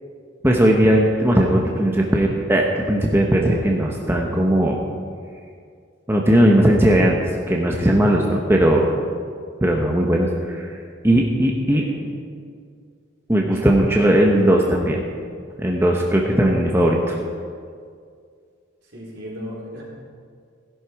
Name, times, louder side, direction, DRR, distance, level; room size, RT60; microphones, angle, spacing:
voice 1, 0.4-4.8 6.1-7.2 7.5-8.9 9.6-10.7 11.0-11.8 13.3-15.0 15.6-17.2, right 1 dB, 10° right, -1 dB, 1.0 m, -18 dB
voice 2, 11.7-12.0 13.5-13.7 18.9-19.8, equal, 65° right, -5 dB, 4.4 m, -36 dB
16.5 x 11.0 x 4.7 m, 2.2 s
head